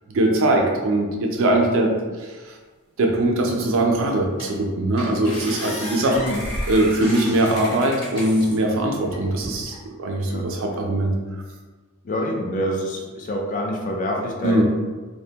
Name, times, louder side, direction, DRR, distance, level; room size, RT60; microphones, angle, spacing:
voice 1, 0.1-1.9 2.2-2.3 3.0-6.2 6.7-11.1 14.4-14.6, right 1 dB, 65° right, 1 dB, 0.4 m, -21 dB
sound 1, 3.8-3.9 4.4-4.6 5.0-8.6 9.1-9.8, equal, 20° left, 1.0 m, -33 dB
voice 2, 6.1-6.5 10.2-10.5 12.0-14.6, equal, 40° left, 1 dB, 0.4 m, -26 dB
2.5 x 2.1 x 2.8 m, 1.3 s
head